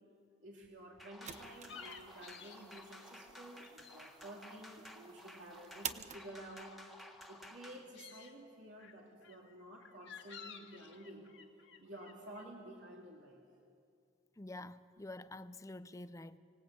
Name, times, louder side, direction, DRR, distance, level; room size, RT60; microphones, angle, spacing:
voice 1, 0.4-6.8 7.3-11.4 11.8-13.4, right 1 dB, 75° right, 2.7 m, -52 dB
sound 1, 0.6-6.6, right 8 dB, 40° right, 0.9 m, -50 dB
sound 2, 1.0-7.9, left 1 dB, ahead, 1.7 m, -55 dB
sound 3, 1.2-4.0 4.3-5.1 5.4-7.4 7.8-8.3 8.8-12.4, left 7 dB, 65° left, 1.8 m, -55 dB
voice 2, 14.4-16.4, left 2 dB, 15° left, 0.6 m, -48 dB
24.5 x 19.0 x 8.6 m
head